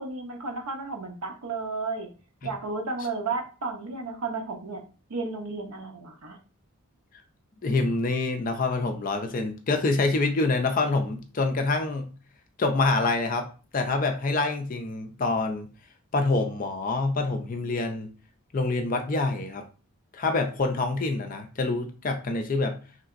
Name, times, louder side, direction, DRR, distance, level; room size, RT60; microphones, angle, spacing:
voice 1, 0.0-2.1 2.4-4.8 5.1-6.4, right 3 dB, 80° right, 4 dB, 0.7 m, -33 dB
voice 2, 7.6-12.1 12.6-13.5 13.7-15.7 16.1-18.1 18.5-19.7 20.1-22.8, left 3 dB, 40° left, 5 dB, 0.4 m, -26 dB
3.2 x 2.8 x 2.5 m, 0.35 s
head